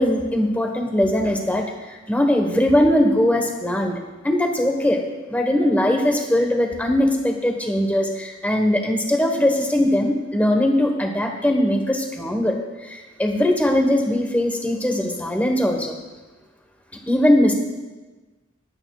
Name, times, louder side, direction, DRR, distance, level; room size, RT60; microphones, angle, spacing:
voice 1, 0.0-3.9 4.2-5.0 5.3-12.5 12.8-15.9 17.1-17.5, left 1 dB, 10° left, 2 dB, 1.2 m, -20 dB
20.0 x 8.9 x 2.4 m, 1.2 s
head